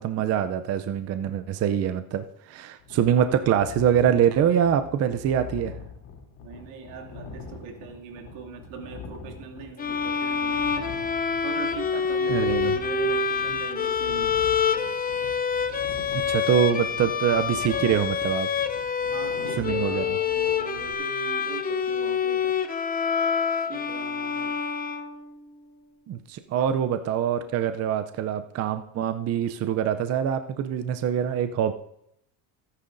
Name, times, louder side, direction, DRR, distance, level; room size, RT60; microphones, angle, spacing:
voice 1, 0.0-5.7 12.3-12.7 16.3-18.5 19.6-20.0 26.1-31.7, right 9 dB, 35° right, 10 dB, 0.5 m, -24 dB
sound 1, 2.8-20.9, left 5 dB, 60° left, 3.2 m, -43 dB
voice 2, 6.4-10.7 11.4-14.3 19.1-22.6 23.7-24.5 26.5-26.7, right 5 dB, 75° right, 1 dB, 2.5 m, -40 dB
sound 2, 9.8-25.4, left 6 dB, 20° left, 0.6 m, -27 dB
17.0 x 9.8 x 2.6 m, 0.77 s
supercardioid pair, 120°, 48 cm